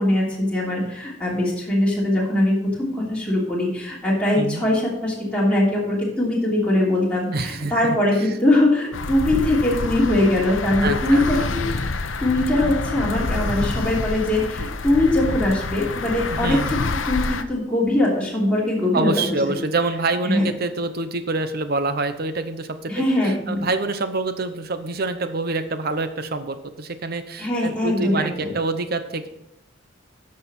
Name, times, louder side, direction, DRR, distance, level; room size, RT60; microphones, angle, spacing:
voice 1, 0.0-11.7 12.2-16.8 17.1-19.6 20.2-20.5 22.9-23.7 27.4-28.5, left 1 dB, 5° left, -6 dB, 2.9 m, -21 dB
voice 2, 7.3-7.7 8.2-8.3 10.8-11.5 16.3-16.7 18.9-29.3, right 3 dB, 50° right, 10 dB, 0.8 m, -26 dB
sound 1, 8.9-17.4, left 3 dB, 80° left, 0.7 m, -27 dB
11.0 x 6.5 x 4.3 m, 0.85 s
head